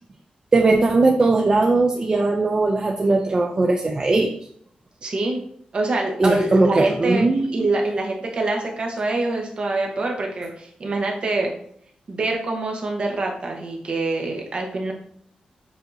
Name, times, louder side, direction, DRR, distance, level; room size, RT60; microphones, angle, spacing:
voice 1, 0.5-4.3 6.2-7.7, right 3 dB, 30° right, 3 dB, 0.4 m, -19 dB
voice 2, 5.0-5.4 5.7-7.3 7.5-11.5 12.1-14.9, right 2 dB, 45° right, 1 dB, 0.9 m, -25 dB
6.9 x 2.7 x 2.6 m, 0.65 s
wide cardioid pair, 115°, 3 cm